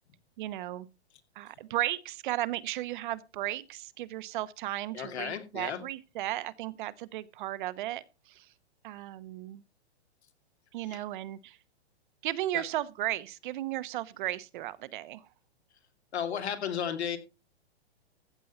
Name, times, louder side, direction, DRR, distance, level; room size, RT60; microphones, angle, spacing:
voice 1, 0.4-0.9 1.4-8.5 8.8-9.6 10.7-11.6 12.2-15.3, right 15 dB, 50° right, 0.9 m, -35 dB
voice 2, 4.9-5.8 10.9-11.0 12.5-12.6 16.1-17.2, left 8 dB, 75° left, 2.6 m, -34 dB
15.0 x 7.5 x 4.3 m
hypercardioid pair, 135°, 33 cm